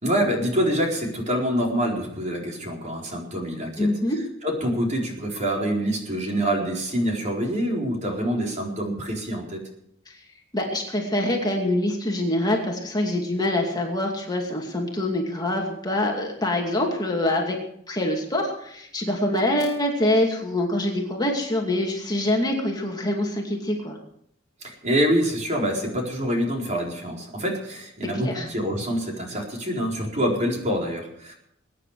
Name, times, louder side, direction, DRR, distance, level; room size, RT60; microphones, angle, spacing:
voice 1, 0.0-3.9 4.4-9.6 24.6-31.3, equal, 40° right, 0 dB, 4.3 m, -26 dB
voice 2, 3.8-4.2 10.1-10.2 10.5-17.6 17.9-24.0 28.2-28.5, left 1 dB, 20° left, 0 dB, 2.5 m, -25 dB
22.5 x 9.8 x 4.9 m, 0.70 s
head